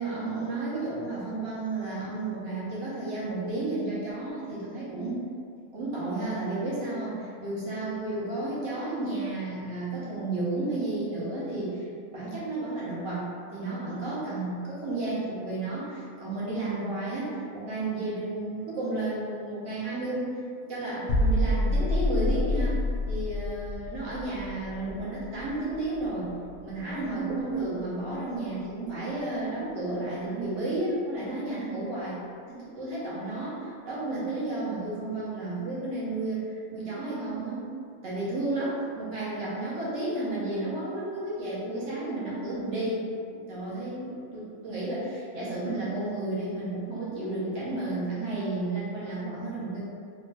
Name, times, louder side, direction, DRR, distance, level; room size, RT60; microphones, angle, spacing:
voice 1, 0.0-5.2 5.7-20.3 20.7-22.8 23.1-26.3 26.6-32.2 32.5-37.7 38.0-49.8, right 2 dB, 60° right, -8 dB, 1.0 m, -32 dB
sound 1, 21.1-26.8 27.0-27.3, left 1 dB, 65° left, 1.1 m, -28 dB
3.0 x 2.2 x 3.2 m, 2.2 s
omnidirectional pair, 1.5 m